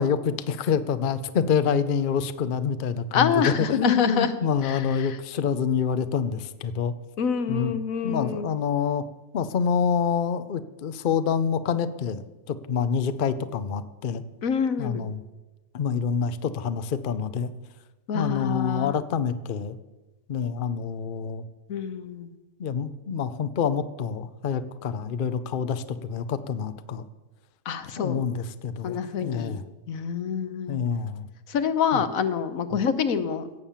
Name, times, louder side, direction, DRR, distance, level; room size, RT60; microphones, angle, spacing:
voice 1, 0.0-6.9 7.5-7.7 8.0-9.0 9.3-12.2 12.5-14.2 14.8-15.2 15.7-17.5 18.1-19.8 20.3-21.4 22.6-27.0 28.0-29.6 30.7-31.3 31.9-32.0, left 6 dB, 50° left, 12 dB, 0.7 m, -27 dB
voice 2, 3.1-4.3 4.6-5.2 7.2-8.5 14.4-15.0 18.1-18.9 21.7-22.3 27.7-28.3 28.8-29.6 29.9-30.8 31.5-33.5, left 6 dB, 75° left, 11 dB, 1.3 m, -26 dB
17.5 x 7.1 x 7.3 m, 1.1 s
omnidirectional pair, 1.4 m